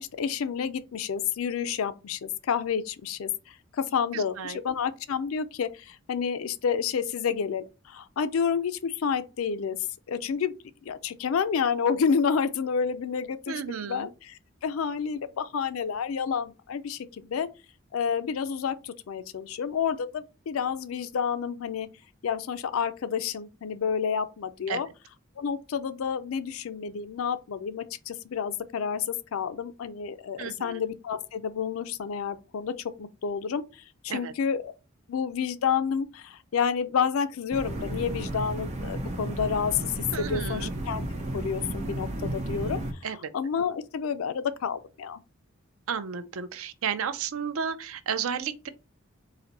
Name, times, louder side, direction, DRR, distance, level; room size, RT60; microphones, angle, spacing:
voice 1, 0.0-9.8 10.1-10.5 10.9-17.5 17.9-21.9 22.2-24.9 25.4-34.7 35.1-41.1 41.3-42.8 43.3-45.2, left 6 dB, 85° left, 0.4 m, -29 dB
voice 2, 4.1-4.6 13.5-14.1 24.7-24.8 30.4-30.8 34.1-34.3 40.1-40.7 43.0-43.3 45.9-48.7, right 7 dB, 90° right, 0.5 m, -33 dB
sound 1, 37.5-42.9, right 1 dB, 35° right, 0.8 m, -33 dB
4.1 x 2.6 x 4.0 m
head